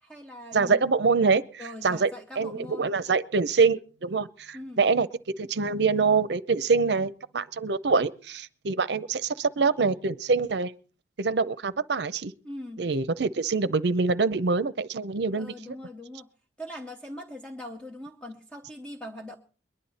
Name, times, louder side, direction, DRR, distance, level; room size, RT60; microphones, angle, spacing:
voice 1, 0.0-0.8 1.6-2.9 4.5-4.8 12.4-12.9 15.3-16.3 16.6-19.4, left 1 dB, 5° left, 0.8 m, -41 dB
voice 2, 0.5-5.1 5.4-10.7 11.2-12.3 12.8-15.5, right 4 dB, 65° right, 0.6 m, -25 dB
22.0 x 10.5 x 4.2 m
head